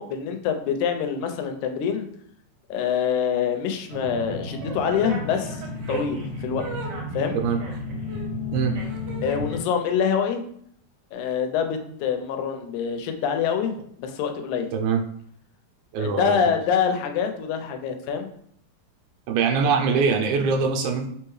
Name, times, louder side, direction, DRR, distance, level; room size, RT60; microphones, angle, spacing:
voice 1, 0.0-2.1 2.7-5.6 5.9-6.6 7.1-7.4 9.2-10.4 11.1-14.7 16.0-18.3, left 7 dB, 85° left, 6 dB, 2.0 m, -25 dB
sound 1, 3.9-9.6, left 1 dB, 65° right, 1.8 m, -32 dB
voice 2, 15.9-16.4 19.3-21.1, right 5 dB, 90° right, 3 dB, 2.0 m, -22 dB
4.5 x 3.4 x 3.1 m, 0.67 s
omnidirectional pair, 3.4 m